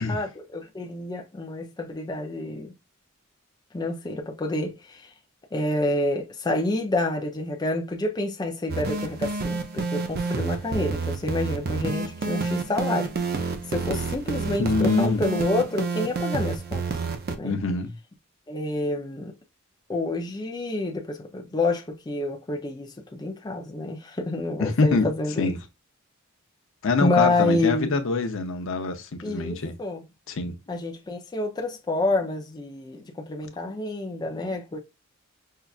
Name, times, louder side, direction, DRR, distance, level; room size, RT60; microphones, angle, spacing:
voice 1, 0.1-2.7 3.7-5.1 5.5-13.1 13.7-16.8 17.4-17.6 18.5-19.3 19.9-25.5 27.0-28.0 29.2-30.0 30.7-34.8, left 2 dB, 20° left, 0.5 m, -28 dB
sound 1, 8.7-17.4, right 4 dB, 45° right, 0.5 m, -29 dB
voice 2, 14.6-15.2 17.4-17.9 24.6-25.1 25.4-25.6 26.8-29.7 30.3-30.5, left 3 dB, 65° left, 0.6 m, -24 dB
5.5 x 2.3 x 2.3 m
head